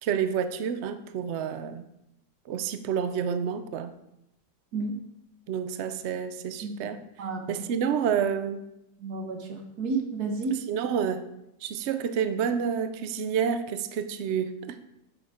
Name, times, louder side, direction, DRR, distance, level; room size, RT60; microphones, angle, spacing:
voice 1, 0.0-1.8 2.5-3.9 5.5-7.0 7.5-8.6 10.5-11.3 11.6-14.8, right 7 dB, 60° right, 10 dB, 0.8 m, -29 dB
voice 2, 7.2-7.6 9.0-10.6, right 4 dB, 80° right, 4 dB, 1.7 m, -31 dB
8.1 x 7.0 x 4.3 m, 0.85 s
omnidirectional pair, 1.6 m